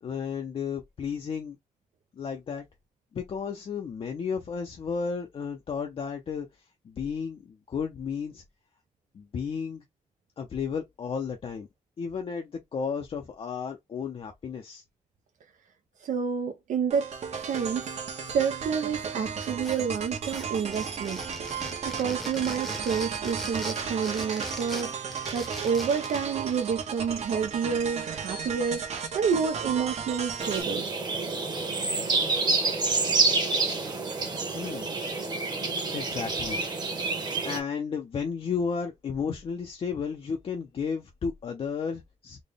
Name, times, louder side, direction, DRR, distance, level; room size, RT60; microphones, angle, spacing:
voice 1, 0.0-1.6 2.2-2.6 3.1-8.4 9.1-9.8 10.4-11.7 12.0-14.8 34.5-34.9 35.9-36.6 37.4-42.4, left 6 dB, 45° left, 0.5 m, -33 dB
voice 2, 16.0-17.1 17.4-18.0 18.2-30.9, right 6 dB, 80° right, 0.6 m, -29 dB
sound 1, 16.9-30.6, right 6 dB, 60° right, 1.0 m, -34 dB
sound 2, 19.4-20.0 20.3-26.3, equal, ahead, 0.8 m, -40 dB
sound 3, 30.4-37.6, right 3 dB, 35° right, 1.1 m, -28 dB
4.0 x 2.2 x 3.3 m
wide cardioid pair, 170°, 13 cm